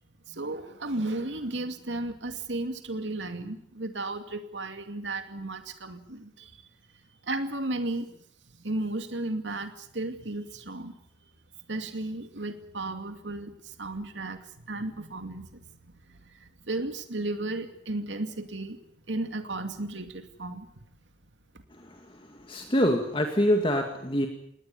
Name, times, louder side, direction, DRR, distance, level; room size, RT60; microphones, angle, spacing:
voice 1, 0.3-6.7 7.2-8.1 8.5-11.3 11.7-15.7 16.1-18.8 19.1-20.7, right 2 dB, 85° right, 8 dB, 2.5 m, -34 dB
voice 2, 21.8-24.3, equal, 30° left, 4 dB, 2.2 m, -26 dB
19.5 x 19.0 x 9.5 m, 0.73 s
head